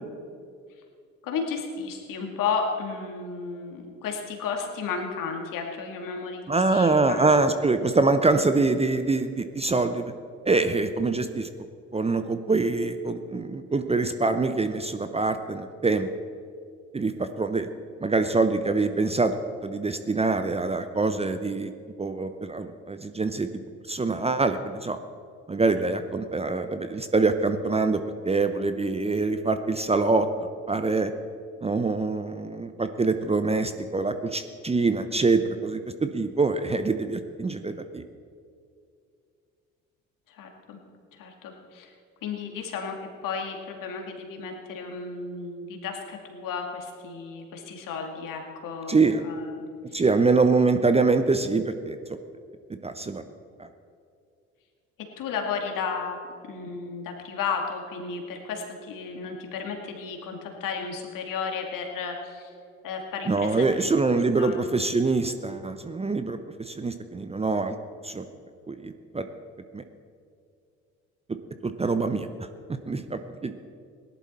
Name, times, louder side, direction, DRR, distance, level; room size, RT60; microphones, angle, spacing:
voice 1, 1.2-7.4 40.3-40.8 41.1-41.9 42.2-43.0 43.2-50.0 55.2-56.2 56.5-62.5 62.8-64.7, left 5 dB, 60° left, 2 dB, 2.3 m, -33 dB
voice 2, 6.5-10.1 10.4-11.5 11.9-16.1 16.9-17.1 17.4-17.7 18.0-19.3 19.6-21.7 22.0-23.5 23.9-25.0 25.5-31.1 31.6-38.0 48.9-49.2 49.9-52.2 52.8-53.2 53.6-53.7 63.3-67.8 68.0-68.3 68.7-69.2 69.7-69.8 71.6-72.3 72.9-73.5, right 3 dB, 15° right, 9 dB, 0.8 m, -24 dB
18.0 x 11.0 x 4.3 m, 2.4 s
hypercardioid pair, 55°, 37 cm